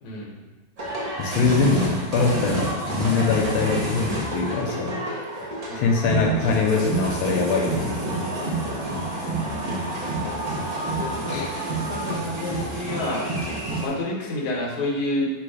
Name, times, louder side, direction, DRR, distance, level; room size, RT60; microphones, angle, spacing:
voice 1, 0.0-0.4 5.7-5.8 10.0-10.5 11.0-11.4 11.9-13.2 13.8-15.3, left 2 dB, 60° left, -2 dB, 1.3 m, -29 dB
sound 1, 0.8-13.9, right 2 dB, 85° right, 0.3 m, -28 dB
voice 2, 1.2-5.0 5.7-8.0 11.3-11.6, left 4 dB, 85° left, 0 dB, 1.4 m, -23 dB
3.4 x 3.0 x 4.8 m, 1.2 s
omnidirectional pair, 2.2 m